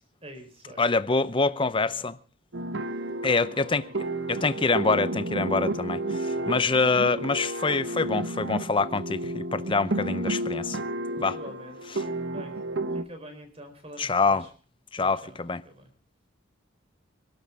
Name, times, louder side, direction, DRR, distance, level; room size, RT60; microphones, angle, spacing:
voice 1, 0.2-2.2 2.8-3.1 3.5-4.0 4.4-4.5 6.4-7.1 11.3-12.0 12.3-12.5 12.9-14.5 14.9-15.9, right 1 dB, 30° right, 4.2 m, -46 dB
voice 2, 0.8-2.2 3.2-3.9 4.3-10.8 11.2-11.4 14.0-14.4 14.9-15.6, left 4 dB, 25° left, 0.6 m, -25 dB
sound 1, 2.5-13.0, right 1 dB, 60° right, 1.1 m, -31 dB
26.0 x 12.5 x 3.5 m
head